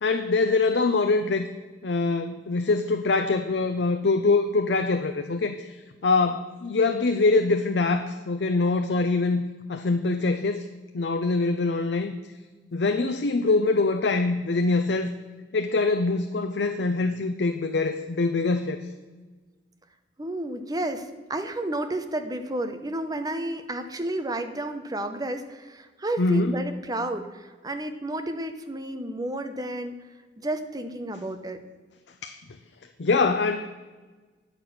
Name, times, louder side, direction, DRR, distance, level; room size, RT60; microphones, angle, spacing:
voice 1, 0.0-1.5 1.8-9.4 9.7-10.7 10.9-12.1 12.7-15.1 15.5-18.8 26.2-26.6 32.2-32.3 33.0-33.8, left 3 dB, 65° left, 7 dB, 0.6 m, -24 dB
voice 2, 20.2-30.0 30.4-31.6, right 1 dB, 20° right, 7 dB, 0.8 m, -31 dB
9.7 x 6.7 x 6.0 m, 1.3 s
head